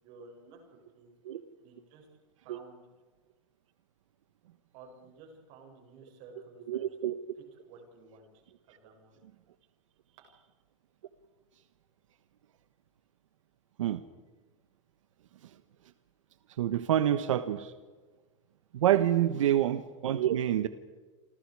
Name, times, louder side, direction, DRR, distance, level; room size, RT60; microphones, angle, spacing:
voice 1, 0.0-1.1 1.6-2.1 2.4-2.8 4.7-6.8 7.6-8.3 8.7-9.2 19.3-19.5, right 3 dB, 35° right, 2 dB, 7.4 m, -53 dB
voice 2, 6.7-7.2 13.8-14.0 16.6-17.7 18.7-20.7, right 11 dB, 80° right, 11 dB, 1.4 m, -27 dB
30.0 x 25.0 x 4.9 m, 1.4 s
supercardioid pair, 175°, 16 cm